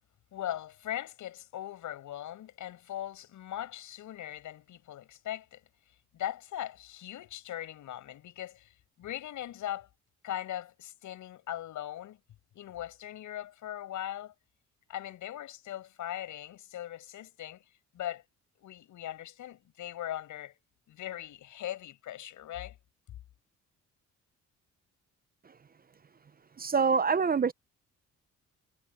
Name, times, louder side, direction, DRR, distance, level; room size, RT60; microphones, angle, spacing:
voice 1, 0.3-5.6 6.1-8.7 9.0-9.9 10.2-12.2 12.5-14.3 14.9-17.6 17.9-18.2 18.6-20.5 20.9-22.8, left 12 dB, 75° left, 7.1 m, -39 dB
voice 2, 26.6-27.5, right 5 dB, 30° right, 0.7 m, -25 dB
cardioid pair, 90°, 30 cm